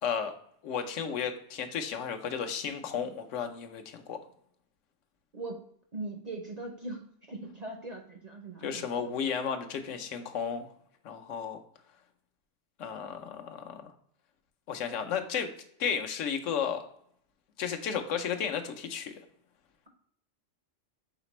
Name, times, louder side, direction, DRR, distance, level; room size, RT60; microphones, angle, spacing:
voice 1, 0.0-0.3 0.6-4.2 8.6-10.7 11.0-11.6 12.8-13.9 14.7-15.5 15.8-16.9 17.6-19.1, left 7 dB, 80° left, 5 dB, 1.0 m, -33 dB
voice 2, 5.3-5.6 5.9-9.2, right 2 dB, 50° right, 2 dB, 0.5 m, -40 dB
5.1 x 3.3 x 2.9 m, 0.67 s
omnidirectional pair, 1.3 m